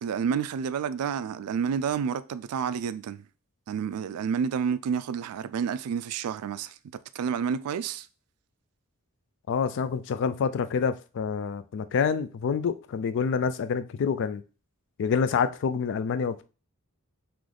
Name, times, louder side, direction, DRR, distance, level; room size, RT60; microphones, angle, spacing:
voice 1, 0.0-3.2 3.7-6.8 7.1-8.1, right 7 dB, 75° right, 0.3 m, -29 dB
voice 2, 9.5-14.4 15.0-16.4, left 6 dB, 55° left, 0.3 m, -27 dB
3.4 x 3.0 x 3.7 m
head